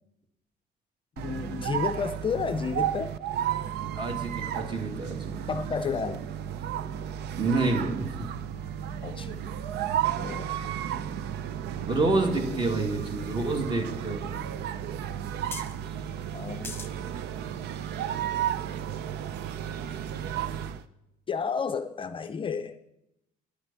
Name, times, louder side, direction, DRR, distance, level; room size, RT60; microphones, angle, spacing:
voice 1, 1.2-3.1 5.5-6.2 9.0-9.4 10.2-10.5 16.3-16.7 21.3-22.9, left 6 dB, 30° left, 0.5 m, -31 dB
sound 1, 1.2-20.8, right 10 dB, 80° right, 0.6 m, -33 dB
voice 2, 3.9-5.4 7.4-8.1 10.9-11.0 11.9-14.5, right 2 dB, 30° right, 2.2 m, -28 dB
sound 2, 12.8-13.8 14.3-14.4 14.5-14.6 15.5-15.8 16.6-16.9 17.6-17.7, left 4 dB, 15° left, 1.2 m, -40 dB
10.5 x 7.9 x 6.9 m
cardioid pair, 110°, 17 cm